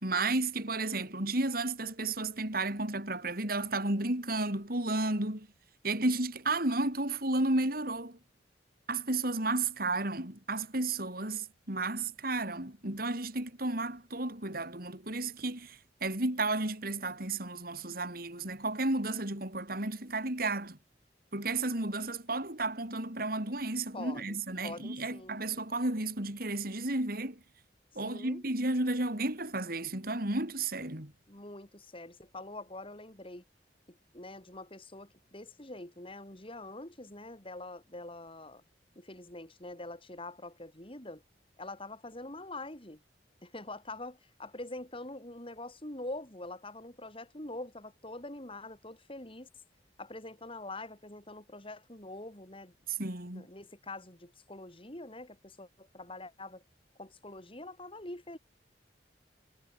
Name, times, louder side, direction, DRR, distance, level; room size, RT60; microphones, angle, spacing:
voice 1, 0.0-5.5 5.8-8.2 8.9-20.8 21.3-27.4 27.9-31.1 52.9-53.5, right 2 dB, 55° right, 5.1 m, -32 dB
voice 2, 23.9-24.4 24.6-25.4 28.0-28.4 31.3-33.4 33.9-38.6 39.0-41.2 41.6-43.0 43.4-49.5 50.0-52.7 53.3-56.6 57.0-58.4, left 2 dB, 30° left, 6.0 m, -44 dB
head